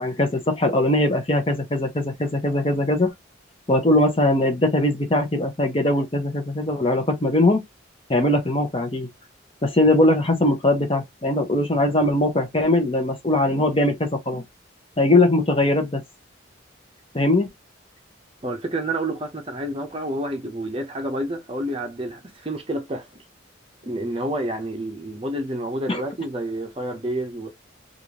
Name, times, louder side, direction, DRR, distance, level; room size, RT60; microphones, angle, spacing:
voice 1, 0.0-3.1 3.7-7.6 8.1-9.1 9.6-14.4 15.0-16.0 17.1-17.5 25.9-26.0, left 1 dB, 30° left, 0.9 m, -20 dB
voice 2, 18.4-23.2 23.8-27.5, right 1 dB, 30° right, 0.7 m, -29 dB
3.3 x 2.5 x 2.9 m
head